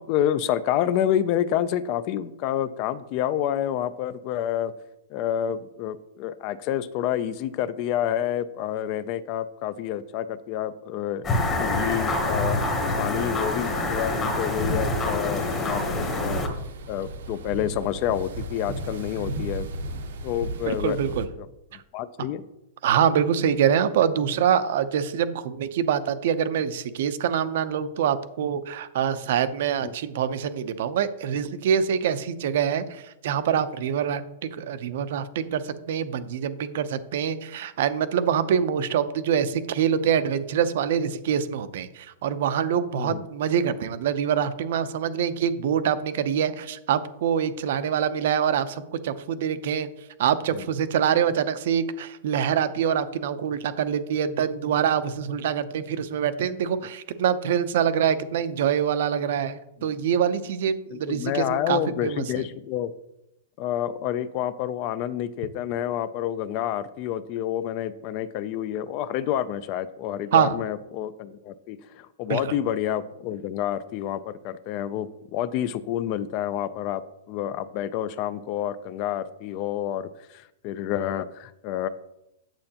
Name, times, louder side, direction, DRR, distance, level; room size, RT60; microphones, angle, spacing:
voice 1, 0.0-4.7 5.1-12.6 13.0-16.4 16.9-19.7 20.2-21.5 21.9-22.4 29.8-29.9 43.0-43.2 50.5-50.6 59.8-59.9 60.9-62.9 63.6-77.0 77.3-81.9, left 11 dB, 30° left, 15 dB, 0.3 m, -28 dB
sound 1, 11.2-16.5, left 2 dB, 15° left, 0.9 m, -26 dB
sound 2, 13.6-21.3, right 1 dB, 85° right, 1.0 m, -35 dB
voice 2, 20.7-21.3 22.8-49.9 50.2-62.2 70.3-70.6 72.3-72.4, right 8 dB, 55° right, 12 dB, 0.6 m, -25 dB
8.8 x 7.6 x 2.9 m, 0.88 s
supercardioid pair, 170°, 0 cm